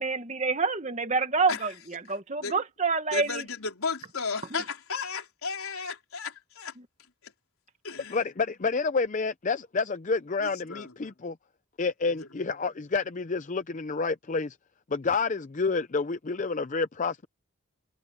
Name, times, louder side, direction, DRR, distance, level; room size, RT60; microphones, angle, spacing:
voice 1, 0.0-3.4 4.5-4.6, right 4 dB, 35° right, 1.6 m, -27 dB
voice 2, 3.1-6.7 7.2-7.3 7.8-8.2 10.4-10.9 12.2-12.3, left 5 dB, 90° left, 4.5 m, -34 dB
voice 3, 8.1-11.3 11.8-14.5 14.9-17.3, left 4 dB, 35° left, 0.5 m, -29 dB
head